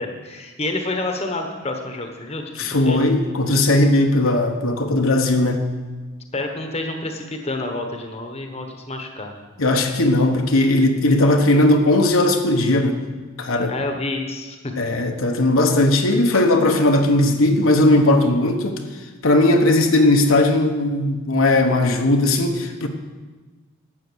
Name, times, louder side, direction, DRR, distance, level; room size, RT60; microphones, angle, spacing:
voice 1, 0.0-2.5 2.9-3.1 5.2-5.5 6.3-9.3 13.7-14.7, left 2 dB, 30° left, 4 dB, 1.1 m, -28 dB
voice 2, 2.6-5.6 9.6-13.0 13.4-13.7 14.8-18.8 19.2-22.9, left 1 dB, 75° left, 3 dB, 1.1 m, -17 dB
12.0 x 7.9 x 6.2 m, 1.3 s
head